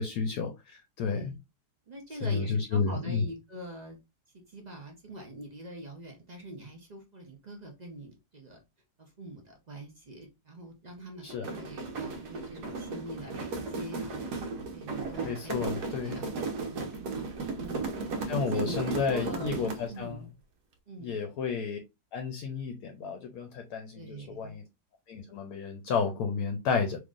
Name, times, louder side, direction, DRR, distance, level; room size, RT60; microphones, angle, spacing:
voice 1, 0.0-1.3 2.2-3.2 11.2-11.5 15.2-16.2 18.3-20.2 21.0-21.8 22.1-24.6 25.1-27.0, left 5 dB, 70° left, 1.0 m, -31 dB
voice 2, 1.0-1.4 1.9-4.0 4.3-8.6 9.0-14.2 14.7-15.7 16.0-16.3 16.6-19.5 19.9-20.3 20.9-21.2 23.9-24.6, right 1 dB, 55° right, 0.4 m, -44 dB
sound 1, 11.3-20.0, right 4 dB, 75° right, 1.2 m, -35 dB
3.6 x 3.0 x 2.4 m
omnidirectional pair, 1.7 m